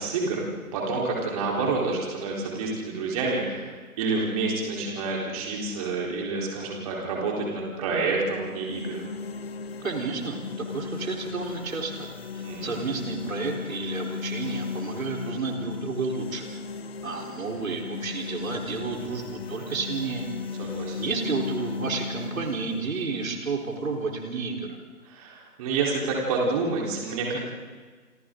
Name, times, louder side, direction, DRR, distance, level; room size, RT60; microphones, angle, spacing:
voice 1, 0.0-3.7 4.0-9.0 12.4-12.9 20.6-21.0 25.0-27.4, right 3 dB, 25° right, -2 dB, 4.1 m, -28 dB
sound 1, 8.3-24.4, left 5 dB, 40° left, 1.8 m, -36 dB
voice 2, 9.8-12.1 12.3-16.5 17.0-20.3 21.0-24.8, right 4 dB, 60° right, 1 dB, 4.1 m, -31 dB
28.0 x 27.5 x 3.9 m, 1.5 s
figure-of-eight pair, 160°, 45 cm